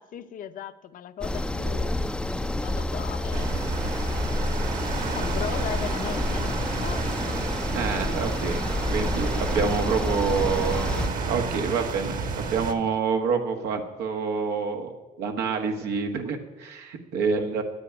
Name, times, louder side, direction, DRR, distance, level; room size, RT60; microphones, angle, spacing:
voice 1, 0.0-1.9 2.2-3.6 5.1-7.3 7.9-8.2 12.8-12.9, left 9 dB, 55° left, 10 dB, 0.8 m, -38 dB
sound 1, 1.2-11.1, left 1 dB, 5° left, 0.5 m, -28 dB
sound 2, 3.3-12.7, right 5 dB, 55° right, 1.5 m, -32 dB
voice 2, 7.7-17.6, right 5 dB, 90° right, 3 dB, 1.5 m, -27 dB
9.6 x 8.6 x 9.9 m, 1.2 s
cardioid pair, 110°, 17 cm